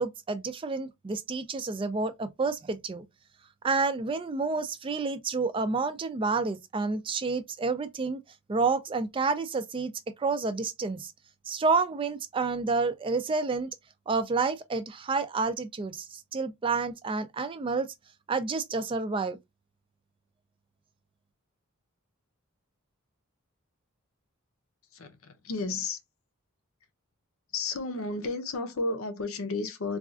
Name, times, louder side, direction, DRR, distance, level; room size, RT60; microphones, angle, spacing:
voice 1, 0.0-3.0 3.6-8.2 8.5-9.9 10.2-11.1 11.5-13.8 14.1-17.9 18.3-19.4, right 4 dB, 25° right, 0.3 m, -29 dB
voice 2, 24.9-26.0 27.5-30.0, left 3 dB, 80° left, 0.7 m, -32 dB
4.0 x 2.4 x 2.3 m
head